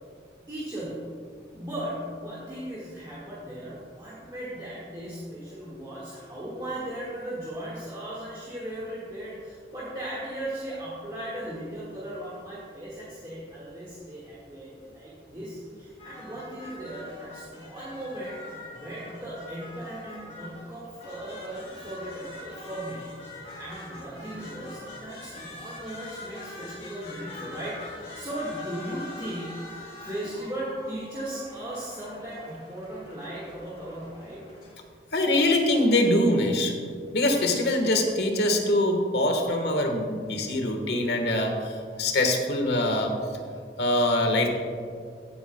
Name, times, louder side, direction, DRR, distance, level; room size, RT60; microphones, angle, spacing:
voice 1, 0.5-1.1 1.5-18.4 18.7-23.0 23.6-27.8 28.1-29.7 30.0-34.4, right 1 dB, 20° right, -8 dB, 1.6 m, -37 dB
sound 1, 16.0-34.7, left 1 dB, 35° left, 2.6 m, -44 dB
voice 2, 35.1-36.7 37.1-43.1 43.8-44.5, left 1 dB, 75° left, 3 dB, 1.3 m, -23 dB
15.0 x 9.0 x 2.2 m, 2.1 s
head